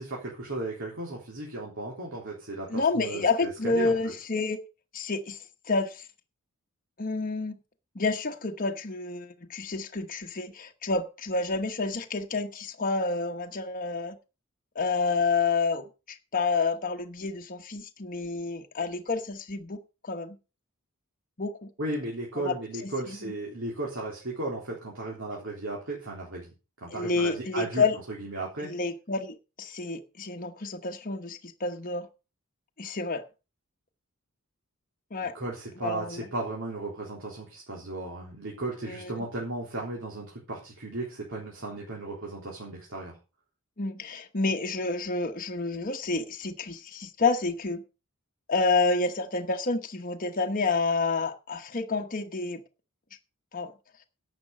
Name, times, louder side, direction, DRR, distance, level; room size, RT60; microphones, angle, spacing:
voice 1, 0.0-2.7 2.9-4.0 21.8-26.5 26.8-28.7 35.3-43.2, right 2 dB, 60° right, 3.7 m, -35 dB
voice 2, 2.7-4.6 4.9-5.4 5.7-6.1 7.0-7.5 7.9-14.2 14.7-20.4 21.4-21.7 22.4-22.5 22.8-23.2 26.9-28.0 28.6-32.1 32.8-33.2 35.1-35.3 35.8-36.3 38.8-39.2 43.8-47.8 48.5-52.6 53.5-53.7, left 3 dB, 40° left, 1.1 m, -29 dB
11.5 x 8.5 x 5.4 m
head